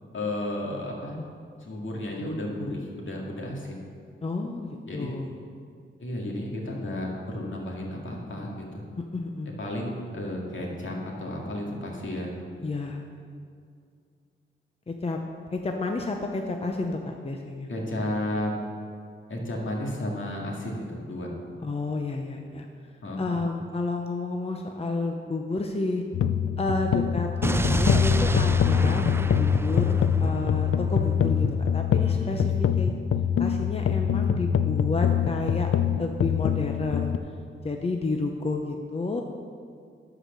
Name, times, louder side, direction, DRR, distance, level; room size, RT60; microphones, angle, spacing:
voice 1, 0.1-1.2 1.6-3.8 4.8-5.1 6.0-8.8 9.6-12.4 17.7-18.5 19.3-21.3 23.0-23.4 32.0-32.4, left 1 dB, 65° left, -2 dB, 2.2 m, -33 dB
voice 2, 4.2-5.3 9.0-9.5 12.6-13.0 14.9-15.2 15.5-17.7 21.6-22.7 23.2-26.0 26.6-29.1 29.4-32.5 32.8-33.0 33.4-35.7 36.0-37.1 37.6-39.2, left 3 dB, 30° left, 3 dB, 0.7 m, -30 dB
sound 1, 26.1-37.2, left 8 dB, 85° left, 0.4 m, -24 dB
Explosion, 27.4-31.5, right 2 dB, 10° right, 0.4 m, -29 dB
11.5 x 4.9 x 6.7 m, 2.3 s
cardioid pair, 80°, 21 cm